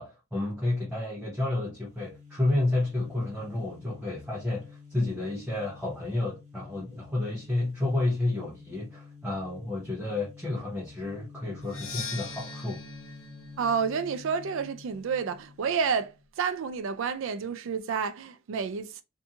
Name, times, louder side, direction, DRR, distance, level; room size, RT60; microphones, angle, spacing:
voice 1, 0.0-12.8, left 2 dB, 5° right, 0.8 m, -30 dB
sound 1, 1.7-16.2, left 5 dB, 40° right, 1.2 m, -50 dB
Percussion, 11.6-15.4, left 3 dB, 65° left, 0.8 m, -42 dB
voice 2, 13.6-19.0, right 6 dB, 65° right, 0.4 m, -30 dB
2.7 x 2.6 x 2.4 m
head